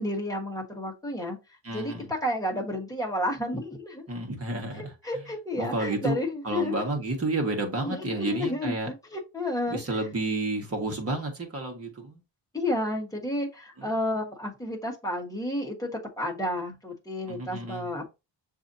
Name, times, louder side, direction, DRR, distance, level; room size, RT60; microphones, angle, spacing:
voice 1, 0.0-1.4 1.7-4.0 4.7-6.9 7.8-9.8 12.5-18.1, left 1 dB, 10° left, 1.4 m, -31 dB
voice 2, 1.6-2.1 4.1-4.9 5.6-6.2 6.4-8.9 9.7-12.2 13.8-13.9 17.3-17.9, right 2 dB, 30° right, 1.5 m, -30 dB
6.8 x 2.8 x 2.7 m
wide cardioid pair, 140°, 44 cm